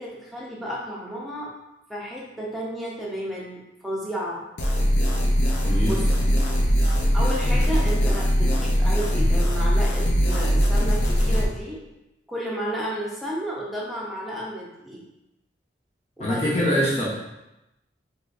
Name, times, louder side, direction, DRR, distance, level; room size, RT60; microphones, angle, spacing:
voice 1, 0.0-1.5 1.9-4.4 5.8-6.1 7.1-11.8 12.3-15.0 16.2-16.8, equal, ahead, -5 dB, 0.6 m, -32 dB
sound 1, 4.6-11.4, equal, 85° left, 0.6 m, -21 dB
voice 2, 5.6-6.0 16.2-17.1, equal, 40° left, -7 dB, 0.9 m, -23 dB
3.7 x 3.0 x 2.6 m, 0.93 s
head